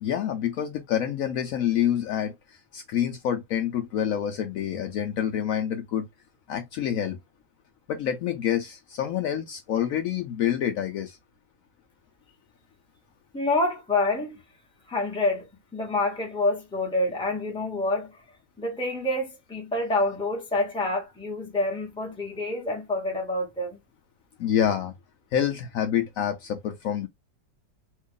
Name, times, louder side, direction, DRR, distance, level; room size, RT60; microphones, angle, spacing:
voice 1, 0.0-2.3 2.7-6.1 6.5-7.2 7.9-11.2 24.4-24.9 25.3-27.1, left 10 dB, 75° left, 0.7 m, -27 dB
voice 2, 13.3-14.4 14.9-15.5 15.7-18.1 18.6-23.8, left 2 dB, 5° left, 0.5 m, -27 dB
2.8 x 2.4 x 3.6 m
omnidirectional pair, 1.9 m